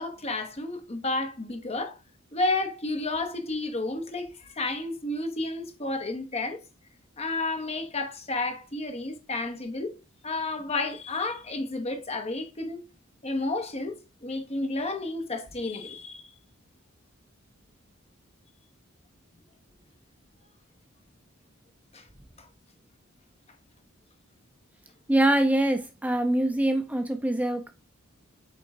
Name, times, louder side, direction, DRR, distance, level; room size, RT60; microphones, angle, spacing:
voice 1, 0.0-1.9 2.3-6.6 7.2-9.9 10.2-12.8 13.2-13.9 14.2-16.2 21.9-22.0, left 2 dB, 30° left, 1.1 m, -31 dB
voice 2, 25.1-27.7, right 1 dB, 10° right, 0.5 m, -24 dB
8.4 x 3.6 x 3.6 m
head